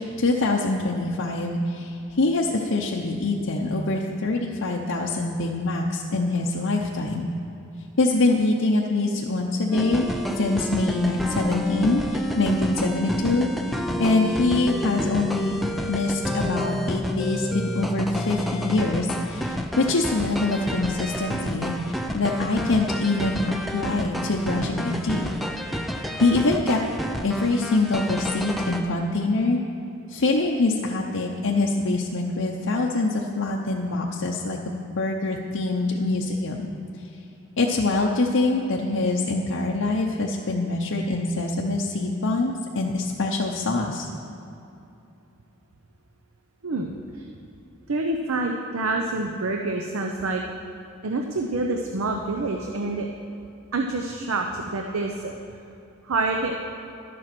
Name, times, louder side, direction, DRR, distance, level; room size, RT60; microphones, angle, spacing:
voice 1, 0.0-7.3 8.0-10.1 10.4-23.4 23.7-25.3 26.2-26.8 27.2-29.6 30.1-36.7 37.6-44.1, left 2 dB, 75° left, -2 dB, 0.7 m, -24 dB
sound 1, 9.7-28.8, equal, ahead, 0.4 m, -29 dB
voice 2, 46.6-47.3 47.9-50.4 51.0-53.1 53.7-55.3 56.0-56.5, right 2 dB, 90° right, 2 dB, 0.7 m, -27 dB
11.5 x 7.6 x 6.0 m, 2.8 s
head